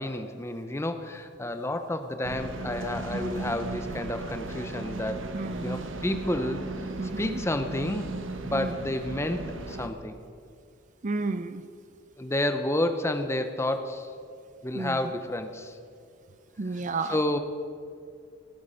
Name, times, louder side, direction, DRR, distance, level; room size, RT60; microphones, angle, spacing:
voice 1, 0.0-5.3 5.6-6.7 7.2-8.1 8.4-10.2 12.2-14.1 14.6-15.8 17.1-17.4, left 1 dB, 15° left, 8 dB, 0.7 m, -30 dB
sound 1, 2.2-9.9, right 2 dB, 90° right, 1.0 m, -36 dB
voice 2, 3.1-3.6 5.3-5.8 7.0-7.4 8.5-8.7 11.0-11.7 14.7-15.0 16.6-17.2, right 3 dB, 40° right, 12 dB, 0.5 m, -32 dB
17.5 x 9.5 x 5.1 m, 2.3 s
head